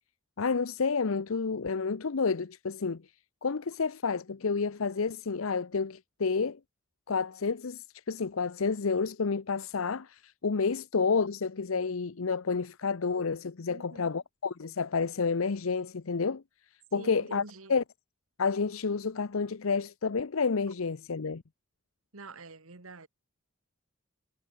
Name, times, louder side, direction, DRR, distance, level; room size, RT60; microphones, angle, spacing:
voice 1, 0.4-3.0 3.4-6.6 7.1-16.4 16.9-17.4 17.7-17.8 18.4-21.4, left 5 dB, 75° left, 0.7 m, -30 dB
voice 2, 13.7-14.2 16.9-17.8 22.1-23.1, right 3 dB, 85° right, 2.1 m, -46 dB
head